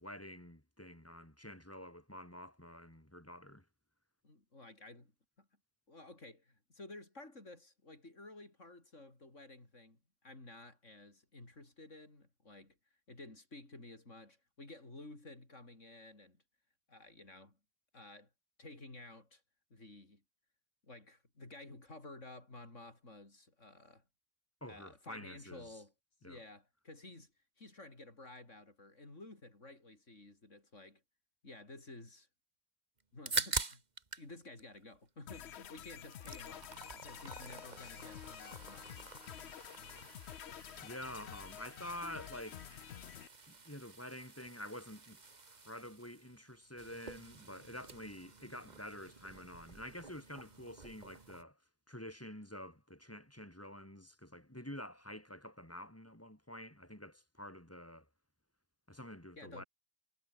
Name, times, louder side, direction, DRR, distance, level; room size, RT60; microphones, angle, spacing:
voice 1, 0.0-3.6 24.6-25.8 26.2-26.4 40.8-42.6 43.5-51.6 51.9-58.1 58.9-59.6, left 1 dB, 10° left, 4.3 m, -48 dB
voice 2, 4.2-5.1 5.4-5.5 5.9-12.8 13.1-16.4 16.9-17.6 17.9-18.3 18.6-19.4 19.7-20.2 20.8-24.0 24.7-25.9 26.2-27.3 27.6-31.0 31.4-32.3 33.1-33.8 34.2-39.0 59.4-59.7, left 2 dB, 85° left, 5.5 m, -53 dB
sound 1, 33.0-34.3 34.6-35.6 35.9-51.4, right 4 dB, 35° right, 1.6 m, -46 dB
sound 2, 35.3-43.3, left 10 dB, 65° left, 1.0 m, -50 dB
omnidirectional pair, 1.2 m